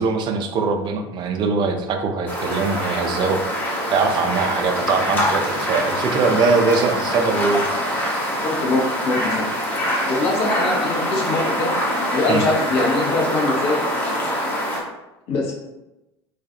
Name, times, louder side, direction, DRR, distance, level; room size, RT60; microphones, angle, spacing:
voice 1, 0.0-3.4 3.9-8.1 12.3-12.4, right 4 dB, 35° right, 4 dB, 0.4 m, -22 dB
sound 1, 2.3-14.8, equal, 10° left, 0.7 m, -24 dB
voice 2, 8.4-9.4 9.7-9.8 10.1-11.7 12.0-13.8 15.3-15.5, left 2 dB, 45° left, -1 dB, 0.7 m, -22 dB
2.3 x 2.3 x 2.7 m, 0.97 s
figure-of-eight pair, 75°, 14 cm